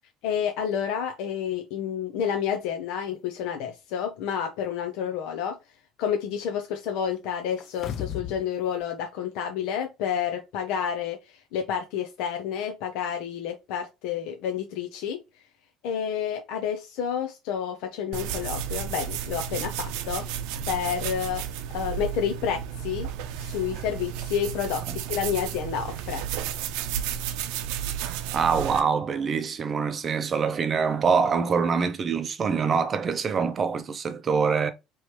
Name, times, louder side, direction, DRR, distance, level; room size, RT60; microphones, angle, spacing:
voice 1, 0.2-5.6 6.0-11.2 11.5-15.2 15.8-20.2 20.7-21.4 21.7-23.1 23.4-26.2, left 8 dB, 70° left, 0.7 m, -29 dB
sound 1, 7.6-8.5 8.8-8.9, left 9 dB, 35° left, 0.4 m, -34 dB
sound 2, 18.1-28.8, right 9 dB, 85° right, 0.6 m, -32 dB
voice 2, 28.3-34.7, right 5 dB, 25° right, 0.6 m, -25 dB
4.8 x 3.1 x 3.0 m
cardioid pair, 175°, 0 cm